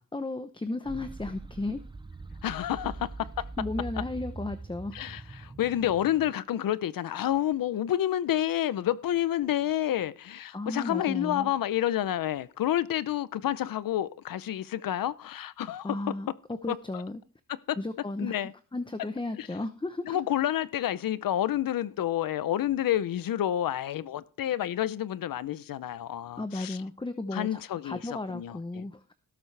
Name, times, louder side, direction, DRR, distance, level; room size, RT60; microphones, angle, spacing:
voice 1, 0.1-1.8 3.6-5.0 10.5-11.5 15.8-16.3 16.6-17.2 17.8-20.2 26.4-29.0, left 2 dB, 15° left, 0.8 m, -34 dB
sound 1, 0.9-6.3, right 3 dB, 15° right, 0.5 m, -42 dB
voice 2, 2.4-3.5 4.9-16.1 16.7-17.0 17.5-17.8 18.2-18.5 19.4-19.5 20.0-26.8 27.3-28.8, left 12 dB, 85° left, 0.6 m, -29 dB
17.5 x 7.3 x 3.3 m
cardioid pair, 85°, 33 cm